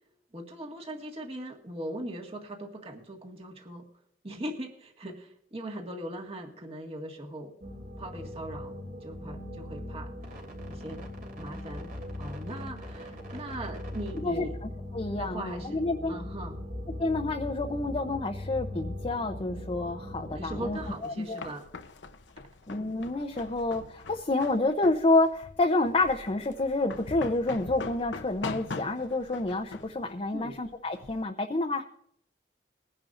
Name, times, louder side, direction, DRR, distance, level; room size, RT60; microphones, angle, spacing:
voice 1, 0.3-3.9 4.2-7.5 8.0-10.1 10.7-11.0 11.4-11.9 12.2-14.6 15.2-16.7 20.3-21.7 30.3-30.6, right 1 dB, 35° right, 1 dB, 1.8 m, -40 dB
sound 1, 7.6-20.9, left 1 dB, 55° right, 2.9 m, -40 dB
voice 2, 14.9-16.2 17.0-21.4 22.7-31.8, left 2 dB, 30° left, 3 dB, 0.7 m, -28 dB
sound 2, 20.8-31.2, left 3 dB, 85° left, 0.8 m, -42 dB
21.0 x 10.5 x 2.6 m, 0.72 s
head